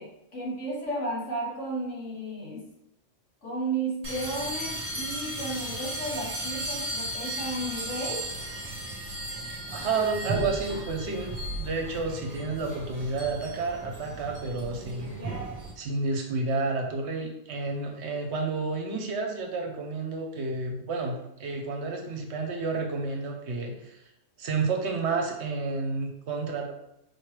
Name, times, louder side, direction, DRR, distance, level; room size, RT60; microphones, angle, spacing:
voice 1, 0.0-2.7 3.4-8.3, right 2 dB, 70° left, -5 dB, 1.7 m, -33 dB
sound 1, 4.0-15.7, right 1 dB, 35° right, 0.9 m, -35 dB
voice 2, 9.7-15.2 15.8-24.0 24.4-26.7, right 3 dB, 65° right, 2 dB, 0.9 m, -30 dB
4.4 x 3.1 x 3.2 m, 0.83 s
omnidirectional pair, 1.3 m